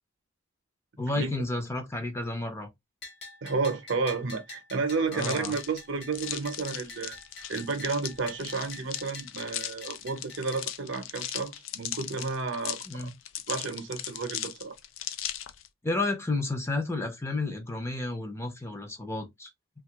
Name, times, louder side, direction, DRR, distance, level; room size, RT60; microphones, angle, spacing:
voice 1, 1.0-2.7 5.1-5.6 12.9-13.1 15.8-19.5, left 2 dB, 15° left, 0.5 m, -31 dB
Bell, 3.0-10.6, left 2 dB, 55° left, 0.9 m, -47 dB
voice 2, 3.4-7.2 7.5-13.1 13.5-14.8, right 4 dB, 65° right, 0.7 m, -31 dB
sound 1, 5.1-15.7, left 11 dB, 75° left, 0.4 m, -38 dB
3.1 x 2.3 x 2.8 m
head